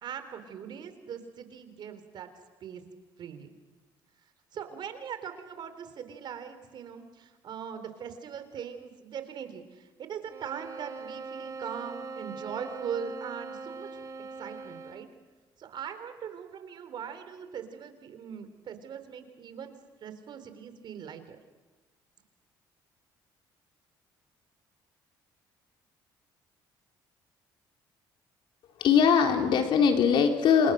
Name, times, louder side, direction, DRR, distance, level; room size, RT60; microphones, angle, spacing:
voice 1, 0.0-2.3 2.6-2.8 3.2-3.6 4.5-14.0 14.4-15.1 15.6-19.7 20.0-21.4, right 7 dB, 60° right, 9 dB, 3.8 m, -40 dB
sound 1, 10.3-15.2, right 4 dB, 40° right, 2.9 m, -41 dB
voice 2, 28.8-30.7, left 7 dB, 70° left, 4 dB, 3.9 m, -21 dB
29.0 x 27.5 x 6.6 m, 1.3 s
cardioid pair, 90°, 9 cm